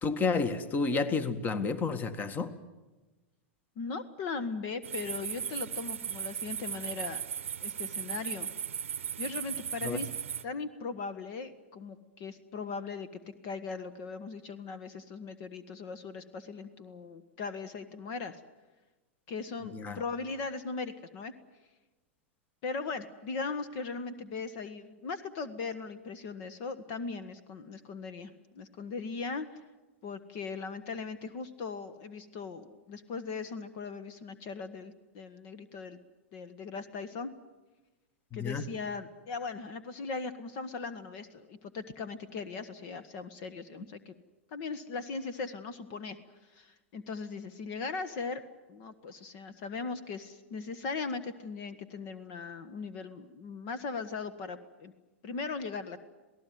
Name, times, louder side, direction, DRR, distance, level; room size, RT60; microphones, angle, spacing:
voice 1, 0.0-2.5 9.8-10.0 19.7-20.0 38.3-38.6, left 4 dB, 25° left, 13 dB, 1.8 m, -30 dB
voice 2, 3.7-7.2 7.6-8.5 9.2-10.1 10.4-18.4 19.3-21.3 22.6-29.6 30.0-36.0 36.3-37.3 38.3-44.1 44.5-46.2 46.5-48.4 48.7-54.9 55.2-56.0, left 4 dB, 50° left, 13 dB, 1.6 m, -39 dB
sound 1, 4.8-10.4, right 8 dB, 80° right, 0.8 m, -37 dB
27.5 x 18.0 x 9.4 m, 1.2 s
hypercardioid pair, 100°, 7 cm